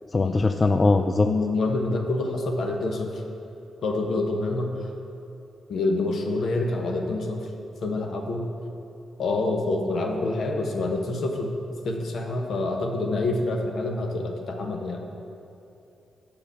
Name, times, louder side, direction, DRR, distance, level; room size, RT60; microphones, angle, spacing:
voice 1, 0.1-1.3, left 3 dB, 40° left, 7 dB, 0.3 m, -21 dB
voice 2, 1.2-3.2 3.8-4.7 5.7-7.4 7.8-8.4 9.2-11.5 11.8-15.0, left 2 dB, 65° left, 2 dB, 1.1 m, -27 dB
7.3 x 5.2 x 6.8 m, 2.7 s
hypercardioid pair, 40°, 0 cm